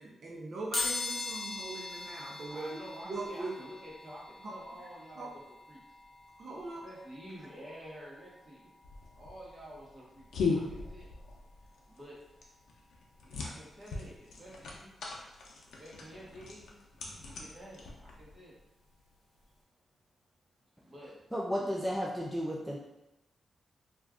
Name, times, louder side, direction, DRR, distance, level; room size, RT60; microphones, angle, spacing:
voice 1, 0.0-3.5 4.4-4.5 5.2-5.3 6.4-6.8, right 2 dB, 50° right, -4 dB, 0.5 m, -41 dB
sound 1, 0.7-11.4 11.9-12.0 13.1-13.2 13.5-15.6 15.9-18.6 18.9-19.1 19.4-19.5, left 3 dB, 45° left, 0.8 m, -42 dB
voice 2, 2.5-5.4 5.7-5.8 6.8-8.7 9.1-11.1 11.9-12.2 13.2-14.9 15.7-18.6 20.8-21.1 21.6-21.7, equal, 30° right, -6 dB, 1.0 m, -50 dB
sound 2, 8.8-18.4, left 4 dB, 85° left, 0.5 m, -39 dB
voice 3, 21.3-22.8, equal, 5° right, -4 dB, 0.3 m, -33 dB
2.4 x 2.3 x 3.5 m, 0.96 s
wide cardioid pair, 140°, 0 cm